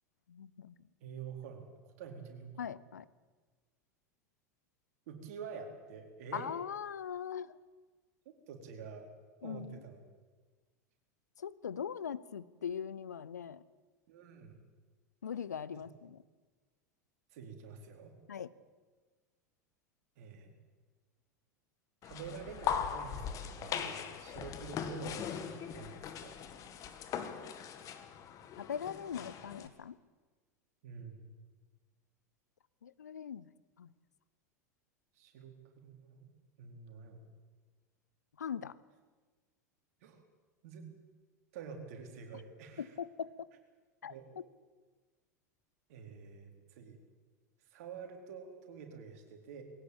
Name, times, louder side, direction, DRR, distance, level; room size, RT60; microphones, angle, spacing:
voice 1, 0.3-0.7 2.6-3.0 6.3-7.6 9.4-9.8 11.4-13.6 15.2-16.2 18.3-18.5 28.6-30.0 32.8-33.5 33.8-33.9 38.4-38.7 42.8-43.3 44.0-44.4, left 8 dB, 75° left, 18 dB, 0.8 m, -41 dB
voice 2, 1.0-2.7 5.1-6.5 8.3-9.1 9.4-10.0 14.1-14.6 15.7-15.8 17.3-18.1 20.2-20.5 22.0-26.4 30.8-31.3 35.1-36.3 36.6-37.2 40.0-40.2 40.6-40.9 41.5-43.0 44.0-44.3 45.9-47.0 47.7-49.6, right 6 dB, 60° right, 3 dB, 4.3 m, -48 dB
sound 1, 22.0-29.7, left 8 dB, 35° left, 2.1 m, -40 dB
21.0 x 17.5 x 8.8 m, 1.4 s
figure-of-eight pair, 85°, 9 cm